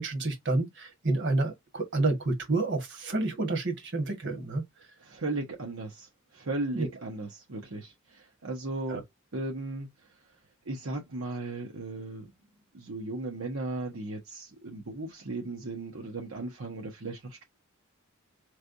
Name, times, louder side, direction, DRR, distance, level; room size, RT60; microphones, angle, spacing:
voice 1, 0.0-4.6 6.7-6.9 8.9-9.0, right 2 dB, 60° right, 1.4 m, -29 dB
voice 2, 5.0-9.0 9.3-9.9 10.6-12.3 12.7-17.4, right 2 dB, 80° right, 1.0 m, -36 dB
4.4 x 3.3 x 2.6 m
head